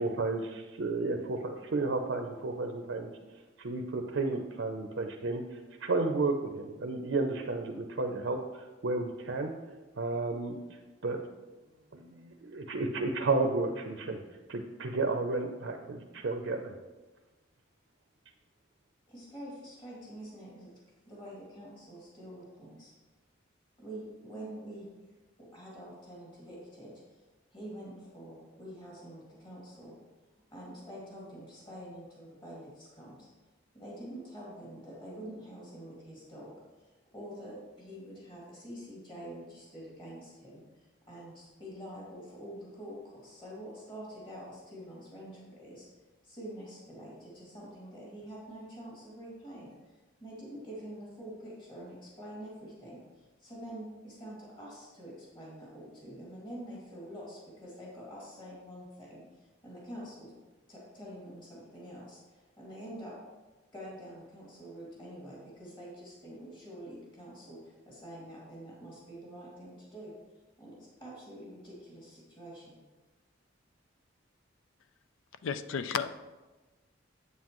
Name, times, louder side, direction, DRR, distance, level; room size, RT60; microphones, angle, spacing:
voice 1, 0.0-3.1 3.6-5.4 5.8-9.5 10.0-10.6 11.0-11.2 11.9-14.2 14.5-16.7, right 3 dB, 70° right, 4 dB, 0.6 m, -32 dB
voice 2, 19.1-20.7 21.0-22.9 23.8-24.9 25.4-27.3 27.5-29.9 30.5-33.3 33.7-45.9 46.2-49.7 50.2-60.3 60.7-63.1 63.7-70.1 70.6-72.8, equal, 25° left, -6 dB, 2.5 m, -46 dB
voice 3, 75.4-76.1, left 6 dB, 80° left, 12 dB, 0.4 m, -32 dB
8.2 x 7.4 x 3.0 m, 1.2 s
head